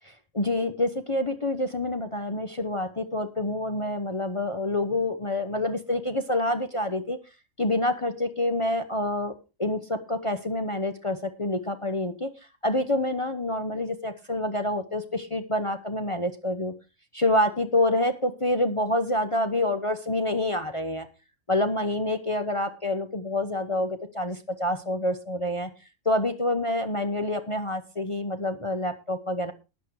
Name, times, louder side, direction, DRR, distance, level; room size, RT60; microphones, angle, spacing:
voice 1, 0.0-7.2 7.6-9.3 9.6-12.3 12.6-16.7 17.1-21.1 21.5-25.7 26.0-29.5, left 1 dB, 25° left, 8 dB, 0.8 m, -27 dB
12.5 x 9.4 x 4.7 m, 0.30 s
omnidirectional pair, 1.4 m